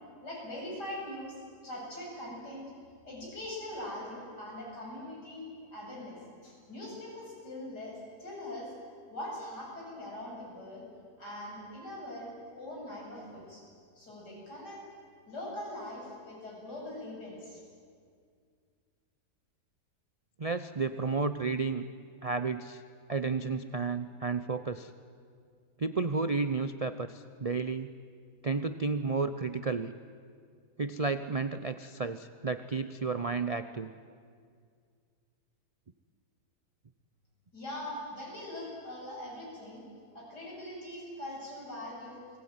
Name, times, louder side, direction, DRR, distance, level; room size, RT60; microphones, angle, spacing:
voice 1, 0.2-1.4 1.6-2.6 3.0-5.5 5.7-8.7 9.1-10.9 11.2-13.6 14.0-14.8 15.3-17.6 37.5-39.8 40.1-42.2, left 1 dB, 75° left, -3 dB, 8.7 m, -42 dB
voice 2, 20.4-21.8 22.2-22.8 23.1-24.9 25.8-27.9 28.4-29.9 30.8-33.9, right 4 dB, 50° right, 11 dB, 0.4 m, -32 dB
29.5 x 21.0 x 9.5 m, 2.2 s
omnidirectional pair, 1.8 m